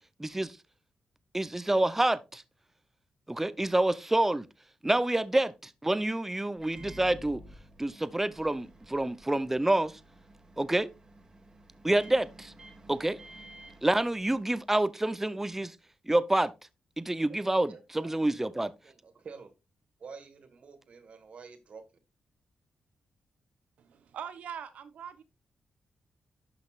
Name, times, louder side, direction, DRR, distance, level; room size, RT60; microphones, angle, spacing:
voice 1, 0.2-0.5 1.3-2.4 3.3-4.5 4.8-7.4 7.8-9.9 10.6-10.9 11.8-12.5 12.9-13.2 13.8-15.7 16.1-16.5 17.0-18.7, right 1 dB, 15° right, 0.6 m, -27 dB
Microwave oven, 6.6-14.7, right 1 dB, 30° right, 1.5 m, -52 dB
voice 2, 17.7-18.1 18.6-19.5 20.0-21.8, right 5 dB, 60° right, 1.5 m, -49 dB
voice 3, 23.9-25.2, right 8 dB, 85° right, 0.9 m, -42 dB
11.5 x 5.9 x 2.4 m
cardioid pair, 75°, 2 cm